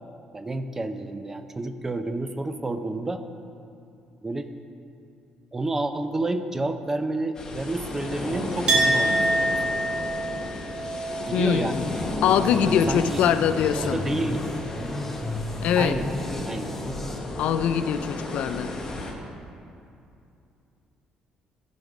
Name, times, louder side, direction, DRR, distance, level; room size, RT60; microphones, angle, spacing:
voice 1, 0.3-3.2 4.2-4.5 5.5-9.3 11.3-11.8 12.2-13.2 13.7-14.5 15.8-16.1 16.5-16.7, right 2 dB, 15° right, 9 dB, 0.5 m, -29 dB
sound 1, 7.3-19.1, left 2 dB, 30° left, 1.3 m, -34 dB
Chink clink, 8.7-14.2 14.5-15.4, right 1 dB, 45° right, 1.9 m, -28 dB
voice 2, 11.3-11.8 12.2-14.0 15.6-16.0 17.4-18.7, left 8 dB, 70° left, 11 dB, 0.4 m, -23 dB
sound 2, 11.7-17.2, left 2 dB, 10° left, 0.8 m, -34 dB
14.5 x 5.2 x 4.9 m, 2.6 s
cardioid pair, 130°, 2 cm